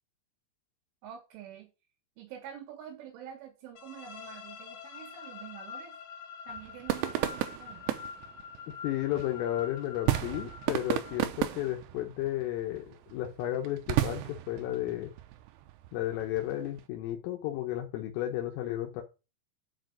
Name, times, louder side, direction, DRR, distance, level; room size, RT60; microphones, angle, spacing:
voice 1, 1.0-1.7 2.2-6.0 6.5-7.9, right 9 dB, 70° right, 3 dB, 4.0 m, -47 dB
sound 1, 3.7-11.5, left 6 dB, 60° left, 2.1 m, -46 dB
sound 2, 6.5-16.8, right 14 dB, 85° right, 2.3 m, -35 dB
voice 2, 8.8-15.1 15.9-19.0, left 13 dB, 80° left, 2 dB, 3.7 m, -33 dB
8.3 x 5.1 x 7.6 m, 0.29 s
omnidirectional pair, 6.0 m